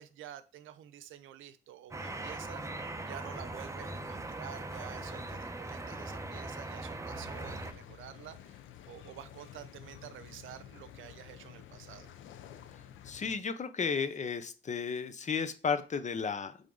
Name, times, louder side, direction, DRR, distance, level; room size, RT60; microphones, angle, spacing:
voice 1, 0.0-2.6 3.0-8.6 8.9-12.1, right 11 dB, 80° right, 13 dB, 0.7 m, -49 dB
sound 1, 1.9-7.7, right 2 dB, 15° right, 0.9 m, -40 dB
sound 2, 7.1-13.3, left 10 dB, 80° left, 0.7 m, -51 dB
voice 2, 13.0-16.6, left 5 dB, 35° left, 11 dB, 0.8 m, -33 dB
8.4 x 3.6 x 3.9 m, 0.35 s
cardioid pair, 90°, 20 cm